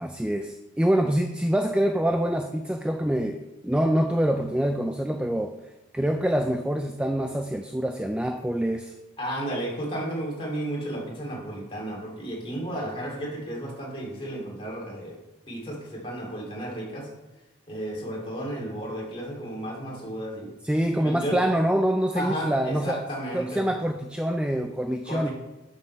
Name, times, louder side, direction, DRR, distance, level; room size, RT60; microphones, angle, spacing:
voice 1, 0.0-5.5 5.9-9.0 20.6-23.0 23.3-25.3, right 1 dB, 5° right, 6 dB, 0.3 m, -25 dB
voice 2, 9.2-15.2 15.5-17.1 17.7-20.5 21.0-21.5 22.2-23.6 25.1-25.3, right 1 dB, 25° left, -3 dB, 2.4 m, -33 dB
7.3 x 6.5 x 5.5 m, 0.99 s
head